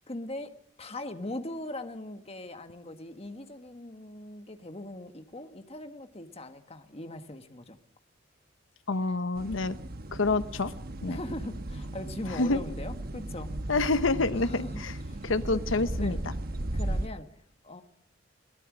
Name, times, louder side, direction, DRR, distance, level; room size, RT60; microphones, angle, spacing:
voice 1, 0.1-0.5 0.8-7.8 11.1-13.5 14.4-15.7 16.0-16.2 16.7-17.3 17.6-17.8, left 1 dB, 30° left, 1.4 m, -40 dB
voice 2, 8.9-9.8 10.1-10.7 11.0-11.2 12.3-12.6 13.7-14.9 15.2-16.2, left 3 dB, 85° left, 0.9 m, -27 dB
sound 1, 9.4-17.1, right 1 dB, 50° right, 1.1 m, -36 dB
23.0 x 18.5 x 6.2 m
head